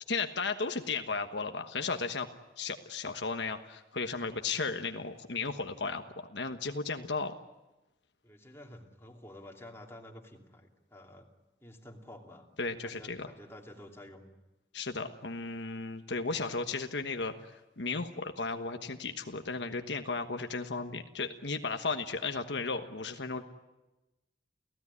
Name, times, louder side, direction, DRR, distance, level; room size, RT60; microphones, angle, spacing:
voice 1, 0.1-2.3 2.6-7.3 12.6-13.3 14.7-23.4, left 4 dB, 75° left, 6 dB, 1.3 m, -35 dB
voice 2, 8.2-11.3 11.6-12.5 12.8-14.3, left 1 dB, 15° left, 1 dB, 2.8 m, -50 dB
29.5 x 16.5 x 9.8 m, 1.1 s
head